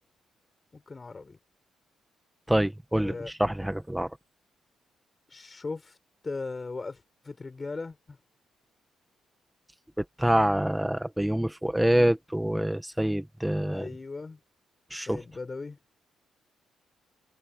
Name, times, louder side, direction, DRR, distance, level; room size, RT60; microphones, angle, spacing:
voice 1, 0.7-1.4 3.0-3.3 5.3-6.0 6.2-8.2 13.7-14.4 14.9-15.8, left 3 dB, 30° left, 4.7 m, -38 dB
voice 2, 2.5-4.1 10.0-13.9 14.9-15.2, right 1 dB, 5° right, 1.7 m, -26 dB
cardioid pair, 90°, 0 cm